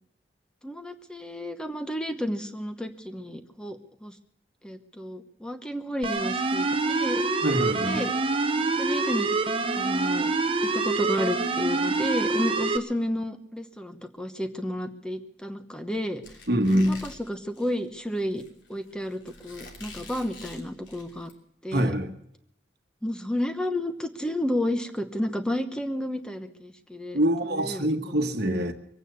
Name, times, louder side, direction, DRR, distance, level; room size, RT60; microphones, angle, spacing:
voice 1, 0.6-4.2 4.6-7.3 7.8-8.1 8.8-9.3 9.7-10.3 10.6-16.2 16.7-18.4 18.7-21.3 21.6-21.9 23.0-27.2 27.5-27.9, left 1 dB, 5° left, 1.0 m, -31 dB
sound 1, 6.0-12.8, right 3 dB, 30° right, 0.8 m, -26 dB
voice 2, 7.4-8.0 16.5-17.0 21.7-22.1 27.1-28.7, equal, 55° right, 1.3 m, -24 dB
Squeak, 16.2-21.3, left 3 dB, 70° left, 3.1 m, -47 dB
23.5 x 9.1 x 6.8 m
head